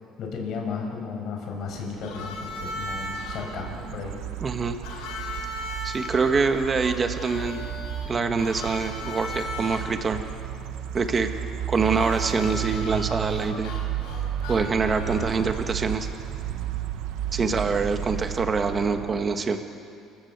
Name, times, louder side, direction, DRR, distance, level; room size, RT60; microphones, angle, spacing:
voice 1, 0.2-4.2 17.4-17.6, left 5 dB, 55° left, 1 dB, 6.1 m, -34 dB
sound 1, 1.9-19.5, right 11 dB, 75° right, 1.3 m, -33 dB
Harmonica, 2.0-3.4 4.8-9.8 11.8-15.7, left 2 dB, 85° left, 4.7 m, -37 dB
voice 2, 4.4-4.8 5.8-7.6 8.0-10.2 10.9-11.3 11.7-13.7 14.5-16.1 17.3-19.6, right 4 dB, 25° right, 7 dB, 1.6 m, -25 dB
28.5 x 15.0 x 8.2 m, 2.5 s
cardioid pair, 135°, 0 cm